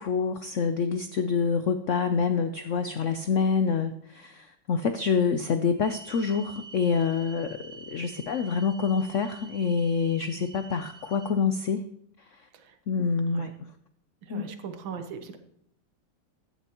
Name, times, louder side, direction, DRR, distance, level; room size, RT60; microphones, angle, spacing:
voice 1, 0.0-11.8 12.9-13.5 14.3-14.5, left 5 dB, 80° left, 9 dB, 0.6 m, -27 dB
sound 1, 5.8-11.3, right 4 dB, 60° right, 1.7 m, -47 dB
voice 2, 14.3-15.4, right 6 dB, 80° right, 8 dB, 1.9 m, -39 dB
15.5 x 11.0 x 3.0 m, 0.75 s
omnidirectional pair, 2.1 m